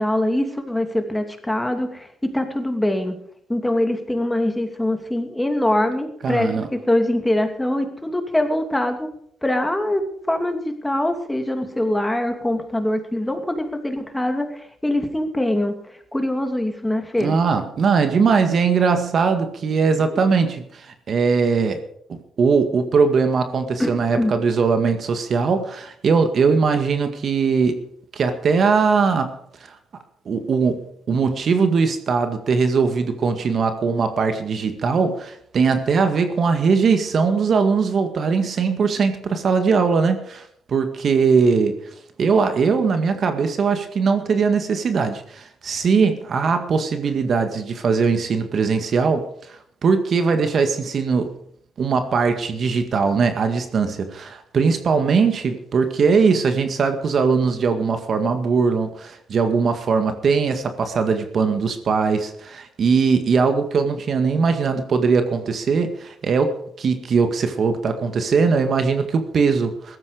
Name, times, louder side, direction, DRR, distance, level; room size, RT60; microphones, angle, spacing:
voice 1, 0.0-3.2 3.5-9.1 9.4-10.0 10.3-17.4 20.1-20.2 23.8-24.3, left 1 dB, 10° left, 6 dB, 2.7 m, -23 dB
voice 2, 6.2-6.7 17.2-21.8 22.1-27.8 28.1-29.3 29.7-29.8 30.3-30.8 31.1-41.8 42.2-51.3 51.8-70.0, right 5 dB, 55° right, 8 dB, 1.9 m, -20 dB
15.5 x 13.5 x 5.1 m, 0.66 s
supercardioid pair, 70°, 0 cm